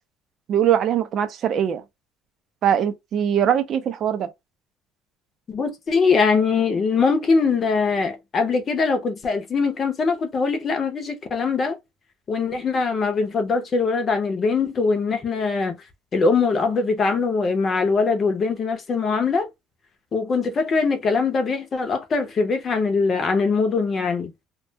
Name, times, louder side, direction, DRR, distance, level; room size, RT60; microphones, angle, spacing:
voice 1, 0.5-1.8 2.6-4.3, right 9 dB, 40° right, 0.4 m, -21 dB
voice 2, 5.5-11.8 12.3-15.8 16.1-19.5 20.1-24.3, left 4 dB, 25° left, 0.5 m, -22 dB
2.3 x 2.2 x 2.6 m
cardioid pair, 165°, 0 cm